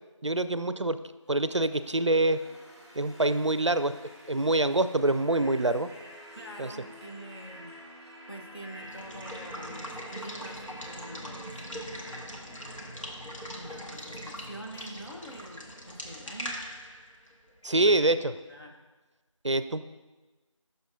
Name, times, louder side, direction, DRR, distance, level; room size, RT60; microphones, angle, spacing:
voice 1, 0.2-1.0 1.3-2.4 3.0-3.9 4.3-5.9 6.6-6.7 17.6-18.3 19.4-19.8, right 2 dB, 65° right, 12 dB, 0.4 m, -25 dB
sound 1, 1.3-14.2, equal, 10° left, 1.7 m, -49 dB
voice 2, 6.3-7.8 8.3-11.7 13.5-16.6 17.8-18.2 18.5-18.8, right 1 dB, 50° left, 0 dB, 1.3 m, -45 dB
Water / Water tap faucet / Liquid, 8.8-18.4, equal, 75° left, 1.7 m, -41 dB
13.0 x 6.9 x 2.7 m, 1.2 s
figure-of-eight pair, 175°, 17 cm